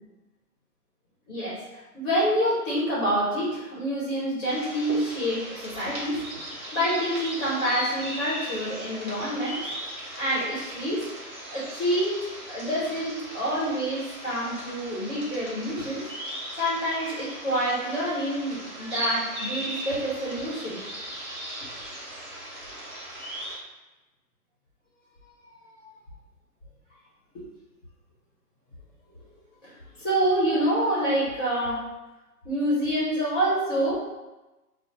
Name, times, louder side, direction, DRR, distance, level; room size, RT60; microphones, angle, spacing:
voice 1, 1.3-6.2 6.7-9.7 10.2-11.1 11.5-16.1 16.6-20.8 25.7-25.9 29.6-31.9 32.4-33.9, equal, 35° left, -7 dB, 1.3 m, -27 dB
sound 1, 4.5-23.6, right 1 dB, 15° right, 1.2 m, -37 dB
5.3 x 2.1 x 3.1 m, 1.1 s
figure-of-eight pair, 135°, 47 cm